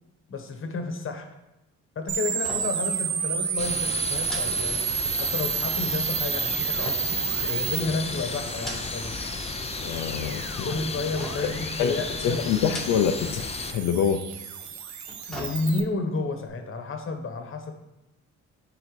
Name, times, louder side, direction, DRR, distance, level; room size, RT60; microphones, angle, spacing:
voice 1, 0.3-1.2 1.9-4.8 5.2-7.1 7.4-9.1 10.6-12.5 15.3-17.7, left 3 dB, 45° left, 5 dB, 1.2 m, -31 dB
sound 1, 2.1-15.8, right 7 dB, 70° right, 0.9 m, -31 dB
sound 2, 2.4-2.9 3.2-3.4 4.2-5.3 6.8-7.9 8.4-9.2 9.5-10.1 11.2-11.7 12.6-13.3 13.6-13.7 14.8-16.0 16.4-16.5, equal, ahead, 2.0 m, -40 dB
sound 3, 3.6-13.7, left 5 dB, 20° left, 0.4 m, -34 dB
voice 2, 9.8-10.7 11.8-14.2, left 7 dB, 90° left, 6 dB, 0.5 m, -26 dB
9.2 x 3.9 x 3.2 m, 0.93 s
cardioid pair, 90°, 30 cm